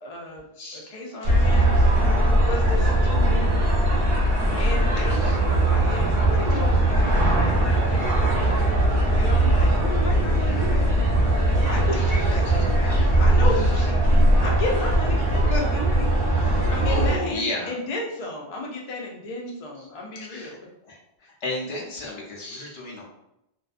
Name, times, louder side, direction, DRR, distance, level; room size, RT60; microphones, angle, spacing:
voice 1, 0.0-1.9 2.4-3.8 4.5-10.9 11.6-15.2 15.5-20.6, left 2 dB, 50° left, -1 dB, 0.5 m, -33 dB
sound 1, 1.2-17.2, right 1 dB, 50° right, 0.8 m, -20 dB
voice 2, 16.8-17.7 20.3-20.5 21.4-23.0, left 2 dB, 85° left, -2 dB, 1.0 m, -31 dB
2.6 x 2.3 x 2.4 m, 0.84 s
omnidirectional pair, 1.1 m